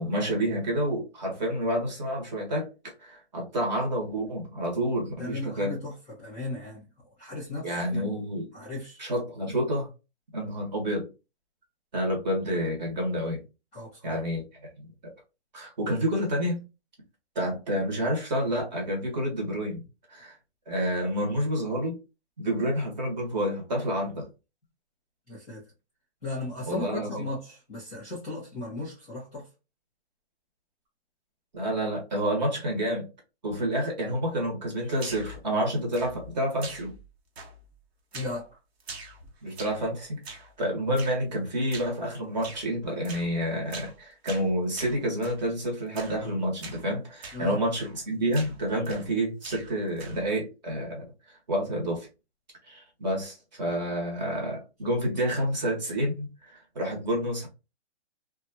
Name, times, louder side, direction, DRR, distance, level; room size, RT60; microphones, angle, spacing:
voice 1, 0.0-5.8 7.6-8.5 9.0-9.9 10.3-11.1 11.9-13.4 14.0-14.4 14.8-14.9 15.5-16.6 17.3-19.8 20.1-20.3 20.7-22.0 22.4-24.3 26.7-27.2 31.5-33.1 33.4-37.0 39.4-52.1 52.6-57.5, equal, 40° right, 1.3 m, -29 dB
voice 2, 5.2-6.9 7.2-8.1 8.5-9.0 13.7-14.2 25.3-25.7 26.2-29.5 38.1-38.6 47.3-47.6, left 2 dB, ahead, 0.5 m, -36 dB
sound 1, 35.0-35.4 35.9-36.3 36.6-37.1 37.4-37.7 38.1-38.4 38.8-39.9 40.2-40.5 41.0-41.2 41.7-42.0 42.4-42.7 43.0-43.3 43.7-44.0 44.3-45.4 45.9-46.2 46.6-46.8 47.2-47.4 47.7-48.0 48.3-49.1 49.4-50.3, right 3 dB, 65° right, 1.3 m, -43 dB
2.7 x 2.4 x 2.7 m
hypercardioid pair, 175°, 34 cm